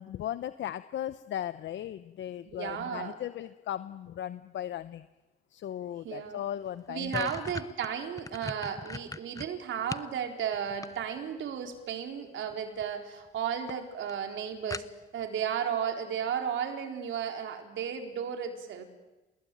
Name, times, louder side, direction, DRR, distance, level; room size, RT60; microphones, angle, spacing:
voice 1, 0.0-5.0 5.5-7.3, left 11 dB, 70° left, 13 dB, 0.9 m, -37 dB
voice 2, 2.5-3.2 6.0-6.4 6.9-14.8 15.1-18.8, right 8 dB, 75° right, 5 dB, 4.2 m, -34 dB
sound 1, 6.3-6.4 6.7-10.1 10.5-11.4 12.5-12.9 13.3-13.4 13.7-13.8 14.1-14.2 14.7-15.3, left 3 dB, 15° left, 0.8 m, -40 dB
29.5 x 20.0 x 9.3 m, 1.1 s
cardioid pair, 90°, 20 cm